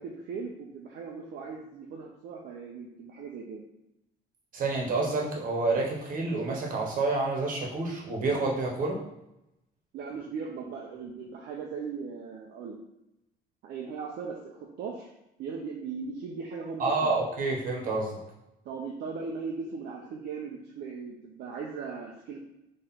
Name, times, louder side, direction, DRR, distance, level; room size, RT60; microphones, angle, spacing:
voice 1, 0.0-3.6 9.9-12.8 13.6-15.1 15.4-17.2 18.6-22.4, right 5 dB, 70° right, -1 dB, 0.7 m, -38 dB
voice 2, 4.5-9.0 16.8-18.2, right 3 dB, 55° right, -1 dB, 1.4 m, -28 dB
3.8 x 3.2 x 4.3 m, 0.87 s
cardioid pair, 110°, 17 cm